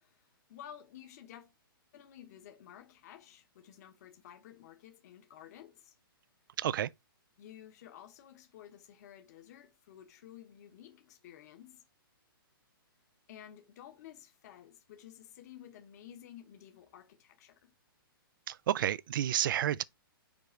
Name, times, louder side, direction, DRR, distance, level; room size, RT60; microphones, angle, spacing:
voice 1, 0.0-1.5 1.9-5.9 7.4-11.8 13.3-17.7, left 10 dB, 45° left, 1.1 m, -53 dB
voice 2, 6.6-6.9 18.5-19.8, right 11 dB, 60° right, 0.4 m, -30 dB
5.3 x 4.8 x 4.4 m
hypercardioid pair, 155°, 12 cm